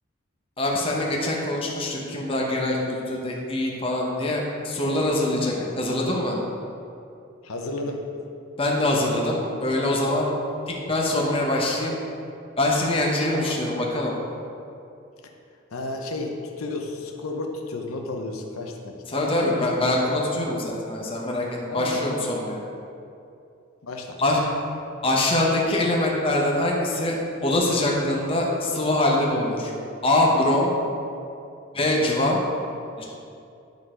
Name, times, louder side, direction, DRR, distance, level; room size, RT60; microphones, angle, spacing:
voice 1, 0.6-6.4 8.6-10.3 10.7-11.9 12.6-14.1 19.1-22.6 24.2-24.4 25.0-29.7 30.0-30.7 31.7-32.4 33.0-33.1, left 1 dB, 25° left, -2 dB, 0.9 m, -24 dB
voice 2, 5.4-5.7 7.4-8.0 13.3-13.7 15.7-19.7 21.7-22.0 23.8-24.2, left 2 dB, 90° left, 2 dB, 0.8 m, -32 dB
10.5 x 4.0 x 4.9 m, 2.6 s
head